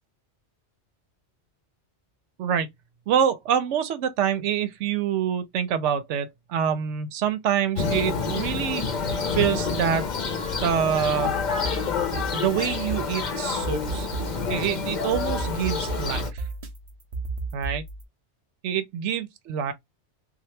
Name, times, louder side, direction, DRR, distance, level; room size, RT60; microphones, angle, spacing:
voice 1, 3.1-10.1 10.6-11.3 12.3-14.1 14.5-16.4 17.5-17.8 18.6-19.7, right 8 dB, 90° right, 0.9 m, -26 dB
Thunder, 7.8-16.3, left 5 dB, 50° left, 0.7 m, -28 dB
sound 1, 11.5-18.0, right 3 dB, 40° right, 0.6 m, -34 dB
2.8 x 2.3 x 3.1 m
omnidirectional pair, 1.2 m